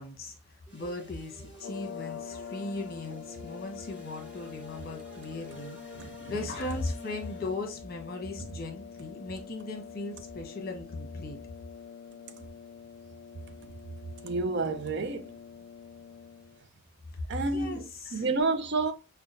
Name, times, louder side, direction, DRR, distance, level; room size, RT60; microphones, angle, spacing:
voice 1, 0.0-11.4 17.5-18.2, left 2 dB, 45° left, 1.1 m, -38 dB
sound 1, 0.7-7.8, right 2 dB, 5° right, 1.6 m, -52 dB
sound 2, 1.5-16.7, left 7 dB, 90° left, 0.4 m, -45 dB
voice 2, 5.9-6.4 12.4-12.5 14.2-15.3 17.3-18.9, right 3 dB, 55° right, 0.5 m, -30 dB
5.6 x 2.3 x 2.5 m
head